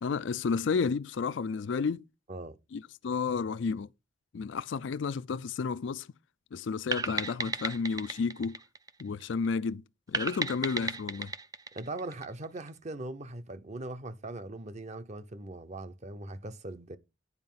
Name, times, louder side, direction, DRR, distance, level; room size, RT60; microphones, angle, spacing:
voice 1, 0.0-2.0 2.7-3.9 4.3-6.1 6.5-8.6 9.0-11.3, left 5 dB, 70° left, 0.4 m, -31 dB
sound 1, 6.9-9.5 10.1-12.7, right 4 dB, 20° right, 0.4 m, -35 dB
voice 2, 11.7-17.0, right 2 dB, 35° right, 0.8 m, -40 dB
9.6 x 5.0 x 5.5 m
head